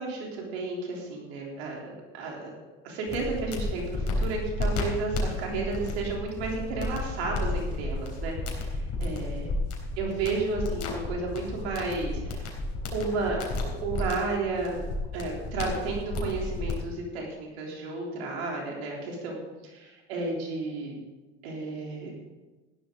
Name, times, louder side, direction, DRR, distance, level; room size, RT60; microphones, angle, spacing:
voice 1, 0.0-2.5 2.8-9.5 10.0-12.6 12.9-14.8 15.1-21.0 21.4-22.1, right 3 dB, 90° right, -1 dB, 3.6 m, -32 dB
sound 1, 3.1-16.7, left 2 dB, 55° left, 3.9 m, -32 dB
14.5 x 11.5 x 3.9 m, 1.2 s
supercardioid pair, 85°, 31 cm